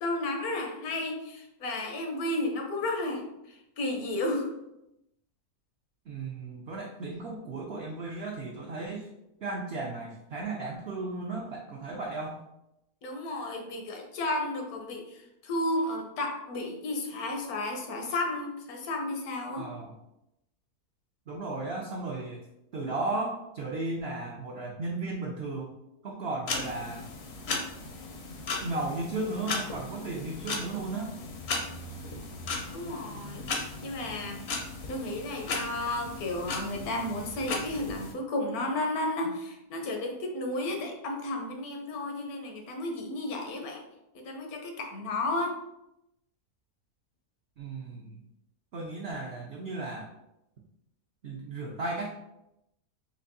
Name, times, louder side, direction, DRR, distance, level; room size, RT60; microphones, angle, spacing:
voice 1, 0.0-4.5 13.0-19.7 32.7-34.4 34.9-43.8 44.1-45.6, left 2 dB, 75° left, 2 dB, 1.2 m, -33 dB
voice 2, 6.1-9.1 9.4-12.4 19.5-19.9 21.3-22.4 22.7-25.7 26.0-27.0 28.6-31.1 47.6-48.2 48.7-50.1 51.2-52.2, right 2 dB, 75° right, -1 dB, 0.5 m, -35 dB
sound 1, 26.5-38.1, left 3 dB, 60° left, 0.7 m, -37 dB
4.3 x 2.6 x 2.6 m, 0.86 s
omnidirectional pair, 1.6 m